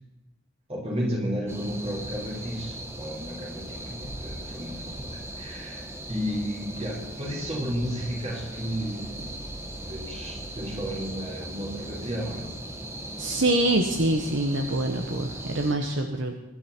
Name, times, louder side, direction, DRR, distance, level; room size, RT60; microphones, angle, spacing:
voice 1, 0.7-9.4 9.8-12.5, equal, 30° right, -4 dB, 4.8 m, -33 dB
sound 1, 1.5-15.7, right 1 dB, 10° right, 1.3 m, -38 dB
voice 2, 13.2-16.3, right 1 dB, 60° right, 5 dB, 1.1 m, -25 dB
23.5 x 11.5 x 4.5 m, 1.1 s
head